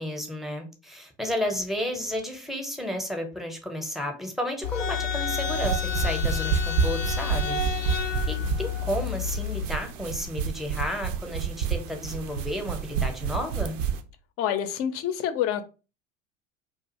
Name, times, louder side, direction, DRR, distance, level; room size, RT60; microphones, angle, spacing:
voice 1, 0.0-13.8, left 1 dB, ahead, 3 dB, 0.6 m, -32 dB
sound 1, 4.6-9.7, left 7 dB, 85° left, 0.5 m, -29 dB
sound 2, 5.3-14.0, right 8 dB, 75° right, 0.5 m, -30 dB
voice 2, 14.4-15.6, left 10 dB, 40° left, 10 dB, 0.5 m, -27 dB
2.4 x 2.4 x 2.8 m, 0.33 s
hypercardioid pair, 75°, 38 cm